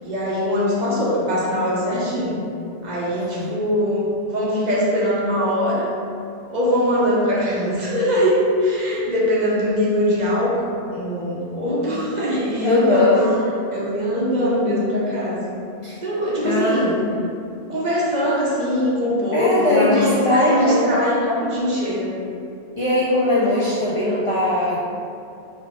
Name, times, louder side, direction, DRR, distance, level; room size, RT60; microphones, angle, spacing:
voice 1, 0.0-2.4 2.8-5.9 6.5-13.4 13.7-15.5 16.0-16.9 17.7-22.2, equal, 45° right, -6 dB, 0.8 m, -21 dB
voice 2, 3.2-3.5 11.9-12.0 12.6-13.2 15.8-16.0 16.4-17.2 19.3-20.8 22.8-24.8, left 2 dB, 55° left, -6 dB, 0.3 m, -20 dB
4.1 x 3.0 x 3.0 m, 2.5 s
omnidirectional pair, 1.1 m